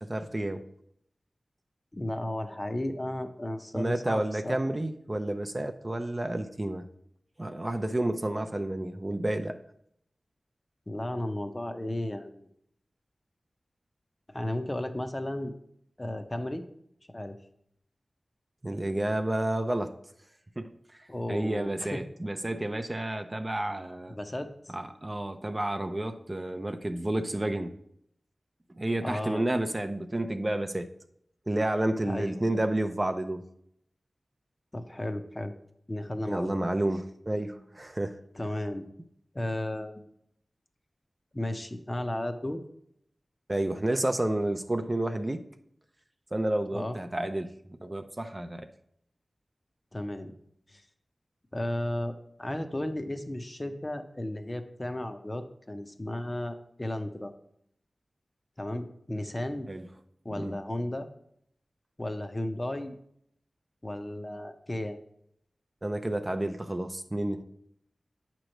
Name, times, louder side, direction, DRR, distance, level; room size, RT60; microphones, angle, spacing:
voice 1, 0.0-0.6 3.7-6.9 7.4-9.6 18.6-20.0 20.6-20.7 21.3-24.2 24.7-27.8 28.8-30.9 31.5-33.4 36.3-38.2 43.5-45.4 46.3-47.5 47.8-48.7 59.7-59.8 60.4-60.6 65.8-67.4, right 1 dB, 25° right, 7 dB, 0.4 m, -30 dB
voice 2, 1.9-4.6 10.9-12.5 14.3-15.5 16.0-16.6 17.1-17.4 21.1-22.0 24.1-24.5 29.0-29.4 32.0-32.4 34.7-35.5 35.9-36.6 38.3-38.9 39.3-40.1 41.3-42.6 46.7-47.0 49.9-50.3 50.7-50.8 51.5-52.1 52.4-57.3 58.6-59.7 60.2-61.1 62.0-63.0 63.8-65.0, left 1 dB, 25° left, 7 dB, 0.7 m, -34 dB
8.8 x 3.0 x 6.4 m, 0.73 s
wide cardioid pair, 80°, 0 cm